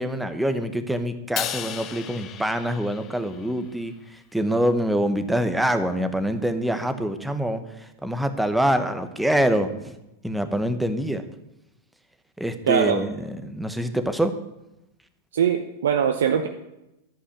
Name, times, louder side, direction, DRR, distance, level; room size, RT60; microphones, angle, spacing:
voice 1, 0.0-3.9 4.3-7.6 8.0-10.0 10.2-11.2 12.4-14.3, right 1 dB, 5° right, 9 dB, 1.1 m, -25 dB
Crash cymbal, 1.4-3.7, left 10 dB, 40° left, 0.8 m, -34 dB
voice 2, 12.7-13.0 15.3-16.5, right 8 dB, 80° right, 5 dB, 0.8 m, -21 dB
11.5 x 5.5 x 8.4 m, 0.90 s
hypercardioid pair, 105°, 0 cm